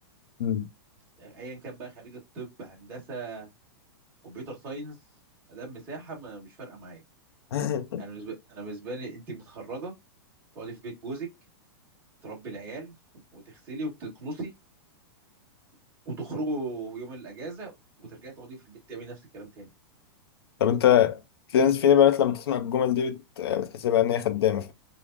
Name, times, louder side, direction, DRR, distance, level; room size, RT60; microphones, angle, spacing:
voice 1, 1.2-3.5 4.2-5.0 5.5-7.0 8.0-9.9 10.5-11.3 12.2-12.9 13.3-14.5 16.0-17.7 18.0-19.7, right 2 dB, 20° right, 1.3 m, -38 dB
voice 2, 7.5-8.0 20.6-21.2 21.5-24.7, left 9 dB, 80° left, 0.5 m, -23 dB
4.9 x 2.0 x 2.5 m
supercardioid pair, 175°, 13 cm